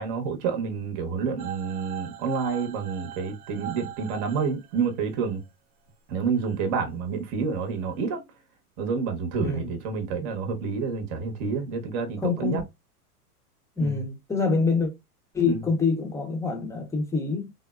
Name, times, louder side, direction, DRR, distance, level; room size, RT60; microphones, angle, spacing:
voice 1, 0.0-5.4 6.1-8.2 8.8-12.6 13.8-14.0 15.5-15.6, right 5 dB, 40° right, 0.9 m, -29 dB
sound 1, 1.4-5.2 6.4-6.5, right 12 dB, 70° right, 0.6 m, -40 dB
voice 2, 9.4-9.7 12.2-12.6 13.8-14.9 15.3-17.5, left 4 dB, 5° left, 0.6 m, -26 dB
3.5 x 2.0 x 2.3 m
hypercardioid pair, 115°, 46 cm